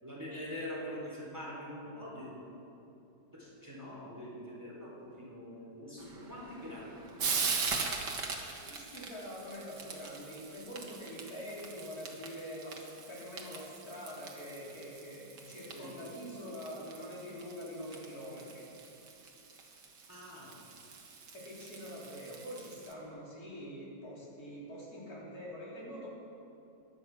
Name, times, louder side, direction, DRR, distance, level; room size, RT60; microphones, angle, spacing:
voice 1, 0.0-2.5 3.3-7.7 7.9-8.1 15.7-15.9 20.1-20.6, left 1 dB, 10° right, -5 dB, 3.7 m, -44 dB
Frying (food), 6.0-22.9, right 5 dB, 70° right, 2.0 m, -41 dB
voice 2, 8.6-18.6 21.3-26.1, equal, 55° left, -6 dB, 4.1 m, -45 dB
16.0 x 11.0 x 6.0 m, 2.8 s
omnidirectional pair, 1.9 m